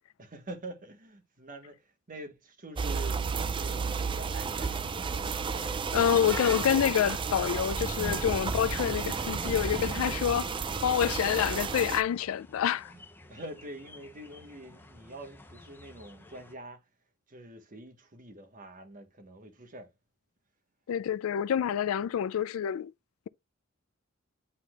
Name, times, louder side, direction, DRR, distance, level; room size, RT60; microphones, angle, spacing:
voice 1, 0.2-5.4 12.8-16.9 17.3-19.9, right 1 dB, 40° right, 1.2 m, -46 dB
sound 1, 2.8-12.0, right 5 dB, 25° right, 0.4 m, -32 dB
ambience street Pakistan Thar Desert Town Horns cars crowds, 3.9-16.5, left 2 dB, 10° left, 0.7 m, -50 dB
voice 2, 5.9-12.9 20.9-22.9, left 9 dB, 80° left, 0.3 m, -27 dB
9.8 x 4.2 x 2.3 m
head